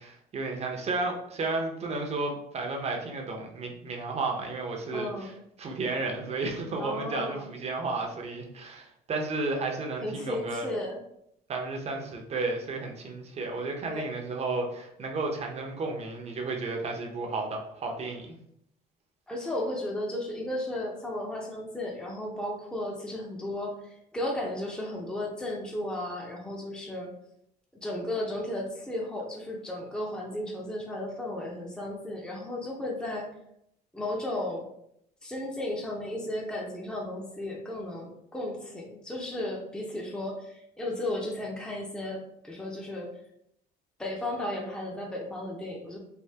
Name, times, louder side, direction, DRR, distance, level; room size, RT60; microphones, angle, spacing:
voice 1, 0.0-5.3 5.6-10.7 11.5-18.4, right 3 dB, 40° right, 1 dB, 0.7 m, -33 dB
voice 2, 4.9-5.3 6.8-7.5 10.0-11.0 13.9-14.1 19.3-27.1 27.8-33.3 33.9-34.6 35.2-43.1 44.0-46.0, left 1 dB, 5° left, -2 dB, 0.6 m, -34 dB
3.4 x 2.7 x 2.8 m, 0.75 s
cardioid pair, 110°, 17 cm